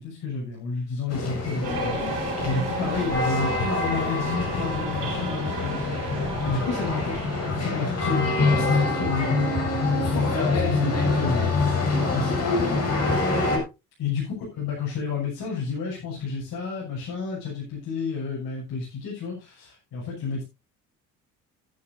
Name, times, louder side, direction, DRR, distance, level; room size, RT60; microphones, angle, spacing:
voice 1, 0.0-7.2 7.4-12.8 14.0-14.3 14.5-20.4, left 5 dB, 45° left, -5 dB, 6.6 m, -31 dB
sound 1, 1.1-13.6, left 3 dB, 30° left, 6.3 m, -25 dB
sound 2, 1.6-7.6, right 3 dB, 55° right, 4.1 m, -35 dB
15.5 x 11.0 x 2.7 m, 0.26 s
figure-of-eight pair, 50°, 49 cm